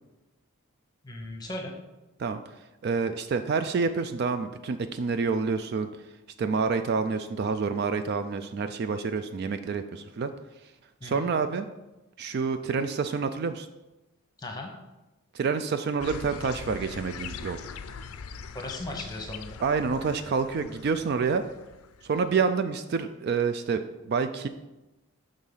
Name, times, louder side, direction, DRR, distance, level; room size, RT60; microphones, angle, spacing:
voice 1, 1.0-1.7 11.0-11.3 14.4-14.7 18.5-19.6, left 1 dB, 20° left, 2 dB, 1.0 m, -37 dB
voice 2, 2.8-5.9 6.4-10.3 11.0-11.7 12.2-13.7 15.3-17.6 19.6-21.4 22.0-23.8 24.1-24.5, right 5 dB, 45° right, 9 dB, 0.3 m, -28 dB
sound 1, 16.0-22.2, left 6 dB, 80° left, 0.4 m, -42 dB
6.4 x 3.8 x 5.5 m, 1.0 s
head